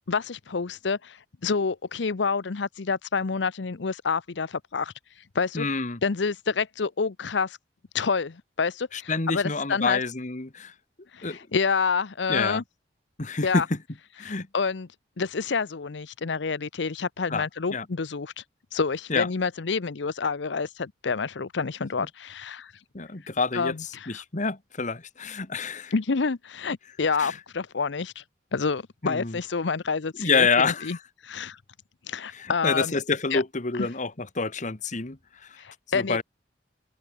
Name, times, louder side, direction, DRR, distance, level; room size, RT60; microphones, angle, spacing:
voice 1, 0.1-4.9 5.3-5.7 6.0-7.6 7.9-10.0 11.1-12.6 13.4-13.7 14.2-14.9 15.2-18.4 18.7-22.7 23.5-24.2 25.9-28.2 28.5-31.0 31.2-31.6 32.1-32.9 33.3-33.4 33.8-33.9 35.6-36.2, left 5 dB, 80° left, 0.7 m, -28 dB
voice 2, 5.5-6.0 8.9-10.7 11.2-11.4 12.3-12.6 13.2-13.8 14.2-14.5 17.3-17.4 17.7-17.9 19.1-19.3 22.9-23.7 24.1-25.9 27.2-27.4 29.0-29.4 30.2-31.0 32.3-35.6 35.9-36.2, left 4 dB, 45° left, 1.5 m, -27 dB
open air
head